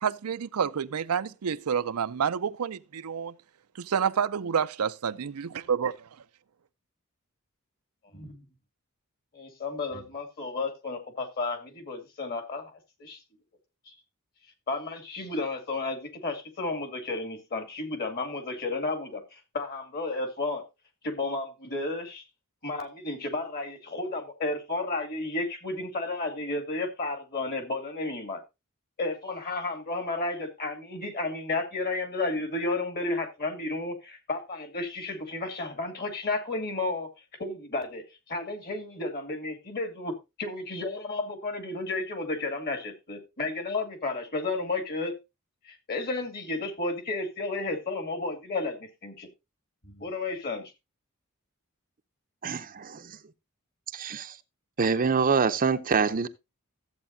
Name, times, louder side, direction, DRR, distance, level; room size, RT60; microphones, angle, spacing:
voice 1, 0.0-3.4 3.8-5.9, right 7 dB, 85° right, 0.5 m, -29 dB
voice 2, 8.1-8.4 9.3-13.2 13.9-14.0 14.7-20.6 21.0-22.2 22.6-28.4 29.0-37.1 37.4-45.2 45.6-49.3 49.8-50.7, left 2 dB, 45° left, 2.3 m, -32 dB
voice 3, 52.4-53.0 53.9-54.3 54.8-56.3, right 5 dB, 40° right, 0.6 m, -25 dB
13.5 x 8.0 x 2.7 m
head